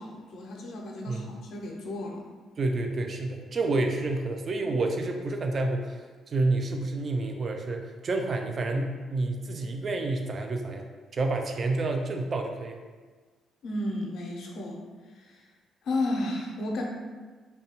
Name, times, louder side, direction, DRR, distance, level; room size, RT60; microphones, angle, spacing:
voice 1, 0.0-2.3 13.6-14.8 15.2-15.4 15.8-16.8, left 2 dB, 70° left, 0 dB, 0.5 m, -33 dB
voice 2, 2.6-6.0 6.3-10.9 11.1-12.8, right 2 dB, 45° right, 4 dB, 0.3 m, -29 dB
2.7 x 2.2 x 2.8 m, 1.4 s
cardioid pair, 90°, 0 cm